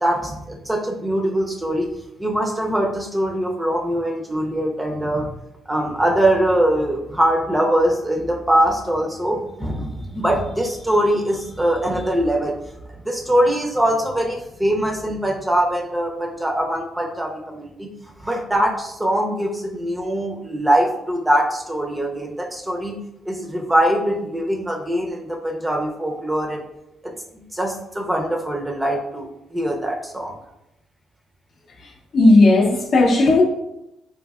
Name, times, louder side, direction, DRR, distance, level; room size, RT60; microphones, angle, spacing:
voice 1, 0.0-1.9 2.2-5.3 5.7-12.6 13.0-17.9 18.2-22.9 23.3-26.6 27.0-30.3, right 1 dB, 10° right, 1 dB, 0.5 m, -22 dB
voice 2, 31.8-33.4, left 2 dB, 60° left, 0 dB, 0.5 m, -15 dB
4.0 x 2.6 x 2.4 m, 0.88 s
cardioid pair, 90°, 0 cm